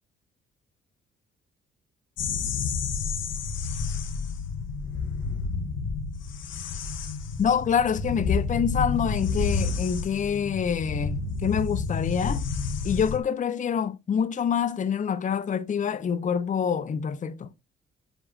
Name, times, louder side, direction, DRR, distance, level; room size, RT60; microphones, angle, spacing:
sound 1, 2.2-13.2, left 4 dB, 75° left, 1.3 m, -30 dB
voice 1, 7.4-12.4 12.8-17.5, left 7 dB, 40° left, 0.6 m, -26 dB
8.0 x 6.1 x 2.4 m
cardioid pair, 90°, 20 cm